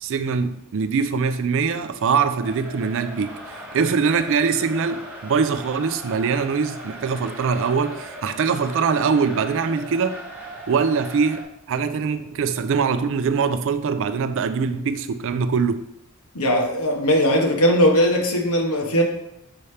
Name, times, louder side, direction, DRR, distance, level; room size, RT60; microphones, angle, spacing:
voice 1, 0.0-3.3 3.7-10.2 10.7-15.8, right 5 dB, 60° right, 10 dB, 0.4 m, -23 dB
sound 1, 2.4-11.4, equal, 10° right, 1.5 m, -38 dB
voice 2, 16.3-19.0, equal, 85° left, 1 dB, 1.3 m, -19 dB
6.7 x 5.6 x 3.3 m, 0.81 s
head